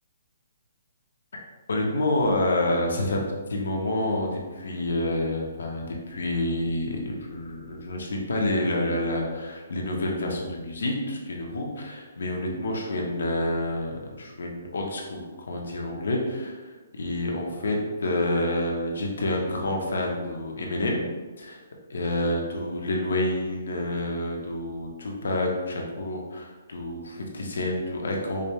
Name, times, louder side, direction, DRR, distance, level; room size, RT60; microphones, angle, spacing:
voice 1, 1.7-21.0 21.4-21.6 21.9-28.5, left 1 dB, 80° left, 0 dB, 0.9 m, -28 dB
5.1 x 2.2 x 3.1 m, 1.3 s
hypercardioid pair, 180°, 0 cm